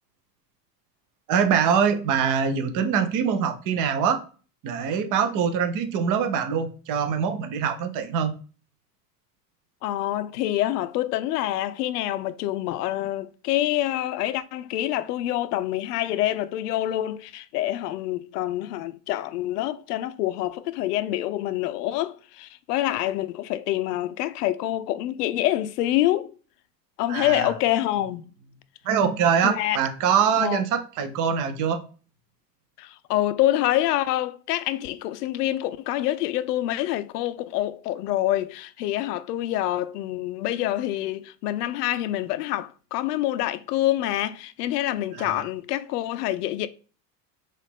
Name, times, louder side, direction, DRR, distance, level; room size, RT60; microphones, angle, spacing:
voice 1, 1.3-4.2 4.6-8.4 27.1-27.5 28.8-31.8 45.2-45.4, right 7 dB, 40° right, 0.7 m, -24 dB
voice 2, 9.8-26.3 27.0-28.2 29.4-29.8 30.4-30.7 32.8-46.7, left 14 dB, 70° left, 0.5 m, -26 dB
4.0 x 2.5 x 3.3 m
hypercardioid pair, 80°, 49 cm